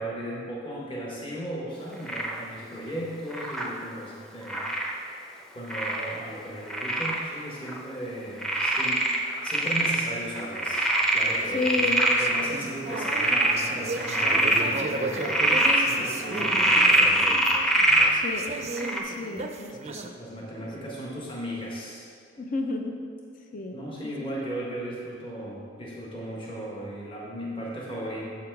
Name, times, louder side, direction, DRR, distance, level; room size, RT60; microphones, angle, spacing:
voice 1, 0.0-4.6 5.5-9.0 9.4-11.7 12.2-17.4 20.2-22.1 23.7-28.3, right 1 dB, 30° left, -5 dB, 1.3 m, -36 dB
Frog, 2.1-2.4 3.3-3.7 4.5-4.9 5.7-6.2 6.7-7.2 7.7-7.8 8.4-10.0 10.4-12.4 12.9-13.5 14.0-14.6 15.1-15.8 16.3-18.1 18.8-19.0, right 1 dB, 5° left, 0.7 m, -23 dB
sound 1, 10.7-20.1, right 3 dB, 35° right, 0.5 m, -35 dB
voice 2, 11.5-12.0 18.1-18.6 19.0-20.2 20.6-20.7 22.4-23.0 23.5-24.1, left 3 dB, 45° left, 3 dB, 0.6 m, -31 dB
7.6 x 5.8 x 4.6 m, 2.2 s
head